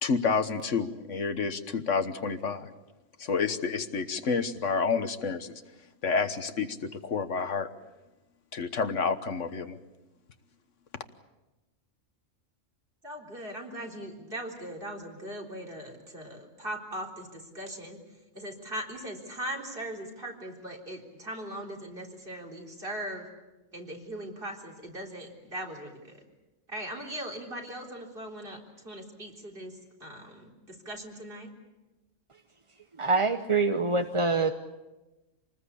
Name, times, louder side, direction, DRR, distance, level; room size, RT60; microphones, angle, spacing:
voice 1, 0.0-2.7 3.2-5.5 6.0-7.7 8.5-9.8, left 5 dB, 70° left, 9 dB, 1.5 m, -29 dB
voice 2, 13.0-18.0 18.3-23.3 23.7-26.2 26.7-28.6 28.8-31.5, right 1 dB, 45° right, 1 dB, 4.2 m, -39 dB
voice 3, 33.0-34.5, right 3 dB, 30° right, 6 dB, 0.8 m, -25 dB
27.0 x 20.0 x 8.5 m, 1.1 s
omnidirectional pair, 1.3 m